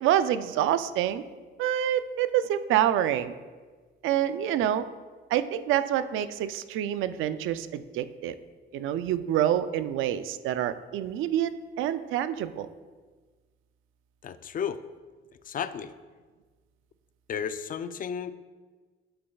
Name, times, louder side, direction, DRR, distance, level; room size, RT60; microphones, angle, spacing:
voice 1, 0.0-1.2 1.6-3.3 4.0-4.9 5.3-8.3 8.7-12.7, right 11 dB, 85° right, 12 dB, 0.4 m, -27 dB
voice 2, 14.2-14.8 15.4-15.9 17.3-18.4, left 7 dB, 45° left, 13 dB, 0.4 m, -33 dB
10.5 x 6.8 x 2.3 m, 1.4 s
cardioid pair, 90°, 20 cm